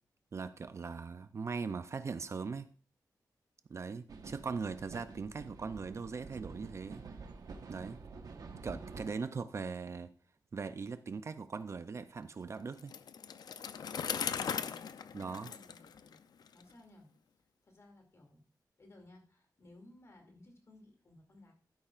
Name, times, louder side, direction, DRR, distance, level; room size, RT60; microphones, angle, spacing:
voice 1, 0.3-2.7 3.7-7.0 7.7-8.0 8.6-10.1 10.5-12.9 15.1-15.5, right 5 dB, 45° right, 0.5 m, -40 dB
sound 1, 4.1-9.1, right 4 dB, 65° right, 1.1 m, -48 dB
Bicycle, 12.8-16.6, left 7 dB, 75° left, 0.5 m, -39 dB
voice 2, 14.3-14.9 15.4-16.2 16.5-17.1 17.6-18.4 18.8-21.5, left 1 dB, 45° left, 2.5 m, -58 dB
12.5 x 9.9 x 2.4 m
wide cardioid pair, 150°, 7 cm